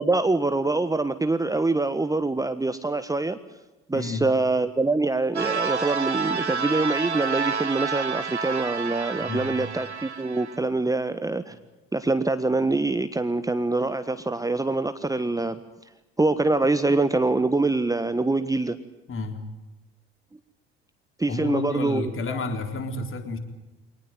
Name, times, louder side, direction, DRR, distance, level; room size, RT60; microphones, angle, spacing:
voice 1, 0.0-3.4 3.9-11.5 11.9-15.6 16.2-18.8 21.2-22.4, right 2 dB, 10° right, 11 dB, 1.4 m, -24 dB
voice 2, 3.9-4.2 9.2-9.6 19.1-19.4 21.3-23.4, left 3 dB, 40° left, 6 dB, 4.2 m, -30 dB
sound 1, 5.3-10.6, right 5 dB, 90° right, 1.1 m, -29 dB
25.5 x 19.5 x 9.3 m, 1.1 s
figure-of-eight pair, 60°, 33 cm